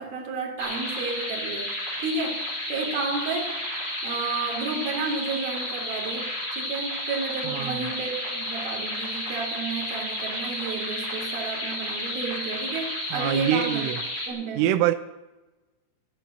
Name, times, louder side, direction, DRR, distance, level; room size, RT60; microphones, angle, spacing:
voice 1, 0.0-1.7 2.0-2.4 2.7-3.6 4.0-13.9 14.3-14.7, right 4 dB, 55° right, 4.3 m, -32 dB
sound 1, 0.6-14.3, left 1 dB, 25° left, 4.5 m, -32 dB
voice 2, 7.4-7.9 13.1-14.0 14.5-14.9, right 12 dB, 90° right, 3.3 m, -25 dB
13.0 x 11.5 x 7.6 m
omnidirectional pair, 5.6 m